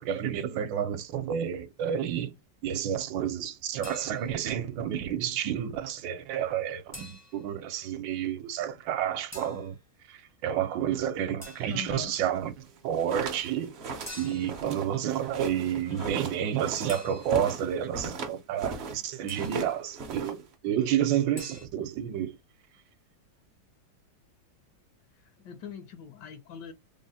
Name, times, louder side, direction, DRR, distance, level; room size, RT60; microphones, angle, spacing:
voice 1, 0.0-2.3 2.6-9.8 10.1-13.7 14.2-22.4, right 9 dB, 80° right, 1.3 m, -30 dB
sound 1, 3.8-4.5 6.9-7.6 9.3-9.7 11.4-12.0 14.1-14.7 16.9-17.6 19.3-19.8 21.4-21.7, left 1 dB, 20° left, 0.4 m, -46 dB
voice 2, 11.7-12.1 15.8-16.2 25.1-26.7, left 7 dB, 75° left, 1.1 m, -43 dB
sound 2, 12.8-19.0 19.3-20.5, right 4 dB, 65° right, 0.6 m, -37 dB
3.7 x 2.0 x 4.0 m
omnidirectional pair, 2.1 m